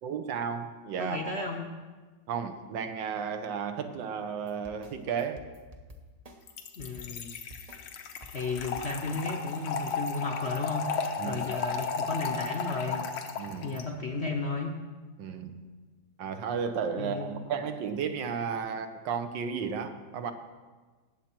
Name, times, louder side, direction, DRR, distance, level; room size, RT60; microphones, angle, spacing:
voice 1, 0.0-1.4 2.3-5.4 11.2-11.4 13.4-13.7 15.2-15.6 16.2-20.3, right 6 dB, 80° right, 8 dB, 1.6 m, -33 dB
voice 2, 1.0-1.7 6.8-7.3 8.3-10.9 11.2-13.0 13.6-14.7 17.0-17.3, left 3 dB, 50° left, 2 dB, 0.8 m, -33 dB
sound 1, 4.2-9.6, left 1 dB, 35° right, 0.6 m, -50 dB
Trickle dribble / Fill (with liquid), 6.5-13.8, left 5 dB, 90° left, 1.7 m, -34 dB
18.5 x 7.5 x 4.4 m, 1.4 s
omnidirectional pair, 2.0 m